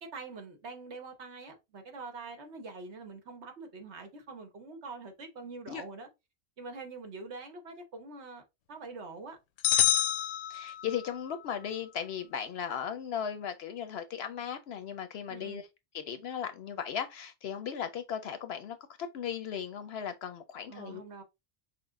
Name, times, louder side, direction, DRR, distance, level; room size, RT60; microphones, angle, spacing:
voice 1, 0.0-6.1 6.6-9.4 15.3-15.6 20.7-21.2, right 3 dB, 65° right, 1.3 m, -45 dB
sound 1, 9.6-11.2, left 12 dB, 90° left, 0.9 m, -27 dB
voice 2, 10.5-15.6 15.9-21.0, left 8 dB, 65° left, 0.7 m, -37 dB
5.9 x 2.0 x 3.5 m
omnidirectional pair, 1.3 m